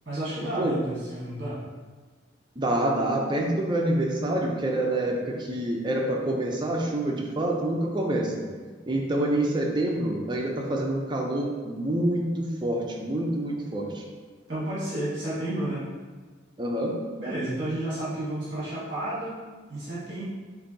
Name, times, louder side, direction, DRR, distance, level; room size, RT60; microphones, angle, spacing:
voice 1, 0.0-1.6 14.5-15.9 17.2-19.4 19.7-20.2, right 1 dB, 40° right, -10 dB, 1.3 m, -31 dB
voice 2, 2.6-8.4 8.9-14.0 16.6-16.9, right 1 dB, 25° right, 0 dB, 0.5 m, -27 dB
6.7 x 2.6 x 2.7 m, 1.4 s
head